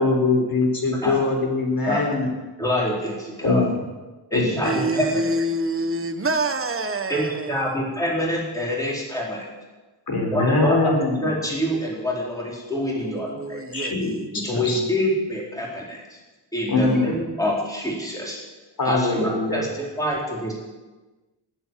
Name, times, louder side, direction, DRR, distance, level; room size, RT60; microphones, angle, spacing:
voice 1, 0.0-2.3 3.4-3.7 4.3-4.8 10.1-11.3 13.7-14.8 16.7-17.1 18.8-19.6, left 3 dB, 50° left, 3.9 m, -22 dB
voice 2, 2.6-3.7 4.3-5.3 7.1-9.5 10.3-10.9 11.2-13.6 14.3-16.2 16.5-18.4 18.8-20.5, equal, 10° left, 4.7 m, -26 dB
voice 3, 4.6-7.6 12.8-14.0, right 2 dB, 30° right, 1.3 m, -26 dB
18.5 x 8.3 x 7.6 m
wide cardioid pair, 110°, 45 cm